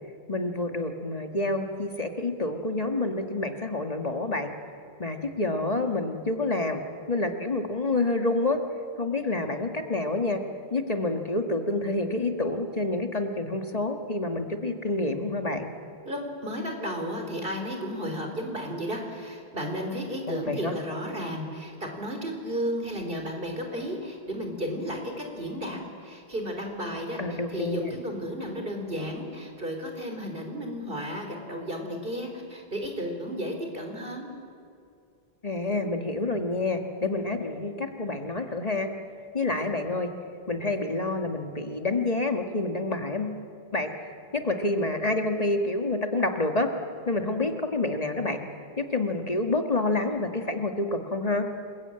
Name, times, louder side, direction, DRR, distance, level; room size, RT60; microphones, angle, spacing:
voice 1, 0.3-4.5 5.0-6.8 7.1-8.6 9.0-10.4 10.7-15.7 20.3-20.7 27.2-27.9 35.4-38.9 39.3-40.1 40.5-43.4 43.7-46.7 47.1-48.4 48.8-51.4, left 2 dB, 40° left, 5 dB, 1.7 m, -28 dB
voice 2, 16.1-34.3, equal, 60° right, 3 dB, 4.2 m, -33 dB
28.5 x 21.0 x 8.9 m, 2.4 s
omnidirectional pair, 1.0 m